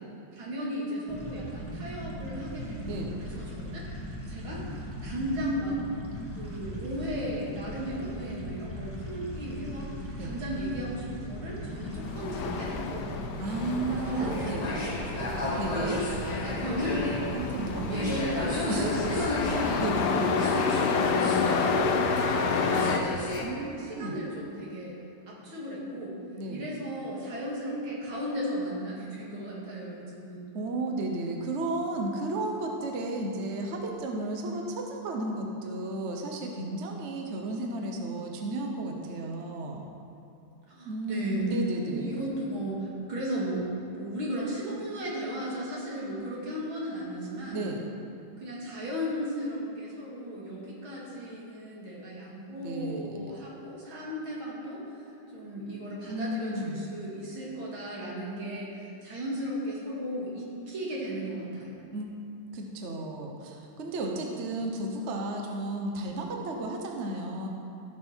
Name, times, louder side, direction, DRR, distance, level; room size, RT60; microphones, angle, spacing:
voice 1, 0.3-4.6 5.0-5.8 6.3-9.9 10.2-13.1 13.5-16.0 16.4-17.0 17.4-21.6 22.1-25.0 25.3-26.2 26.5-30.4 40.7-41.5 41.9-43.7 43.9-47.7 48.4-54.8 55.3-61.8, equal, 85° right, -5 dB, 3.1 m, -35 dB
sound 1, 1.1-19.9, equal, 5° right, 1.5 m, -39 dB
Truck, 11.9-23.0, left 5 dB, 65° left, 1.2 m, -30 dB
sound 2, 13.4-23.4, left 2 dB, 30° left, 0.9 m, -34 dB
voice 2, 13.4-14.7 15.6-16.0 17.3-18.2 18.7-18.9 19.8-20.2 23.4-24.2 26.4-26.7 30.5-39.9 40.8-42.2 47.5-47.8 52.6-53.2 56.1-56.8 61.8-62.1 62.5-67.5, right 2 dB, 45° right, 1 dB, 1.1 m, -33 dB
16.0 x 6.1 x 4.5 m, 2.9 s
omnidirectional pair, 2.1 m